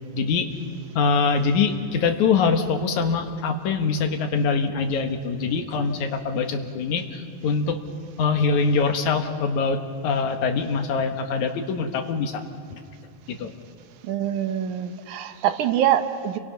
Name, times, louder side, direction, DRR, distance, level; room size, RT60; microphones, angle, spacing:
voice 1, 0.1-0.5 1.0-7.8 8.2-12.4 12.7-12.8 13.3-13.5, left 5 dB, 75° left, 5 dB, 2.8 m, -23 dB
voice 2, 14.0-16.4, right 10 dB, 80° right, 8 dB, 2.4 m, -24 dB
30.0 x 23.5 x 5.8 m, 2.4 s
omnidirectional pair, 3.5 m